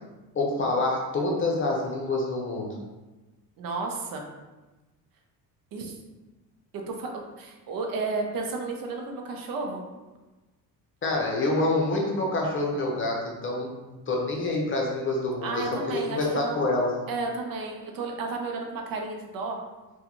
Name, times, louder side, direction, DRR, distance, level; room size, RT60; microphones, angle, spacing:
voice 1, 0.3-2.7 11.0-16.9, left 2 dB, 30° left, -2 dB, 0.7 m, -27 dB
voice 2, 3.6-4.2 5.7-5.9 6.9-7.1 7.4-9.8 15.4-16.6 17.1-19.6, right 3 dB, 60° right, 2 dB, 0.6 m, -32 dB
3.7 x 2.3 x 2.9 m, 1.1 s
cardioid pair, 115°, 40 cm